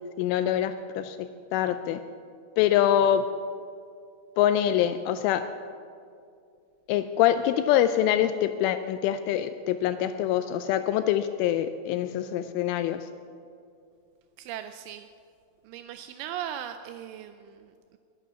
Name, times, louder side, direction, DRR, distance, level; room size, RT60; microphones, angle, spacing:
voice 1, 0.2-2.0 2.6-3.3 4.4-5.5 6.9-13.1, left 11 dB, 85° left, 10 dB, 2.8 m, -25 dB
voice 2, 14.4-15.1 15.6-18.0, right 10 dB, 85° right, 9 dB, 2.8 m, -38 dB
19.5 x 9.1 x 6.9 m, 2.4 s
omnidirectional pair, 5.9 m